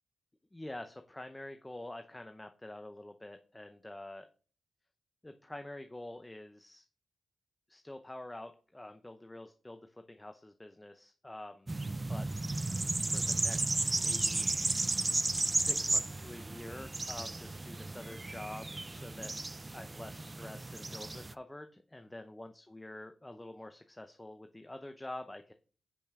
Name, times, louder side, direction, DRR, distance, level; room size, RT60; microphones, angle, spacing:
voice 1, 0.5-4.3 5.2-6.8 7.7-11.7 12.1-12.3 13.1-14.7 15.5-19.3 19.7-25.5, left 1 dB, 15° left, 7 dB, 0.7 m, -47 dB
sound 1, 11.7-21.3, right 2 dB, 25° right, 0.4 m, -34 dB
10.0 x 5.4 x 3.6 m, 0.41 s
cardioid pair, 65°, 0 cm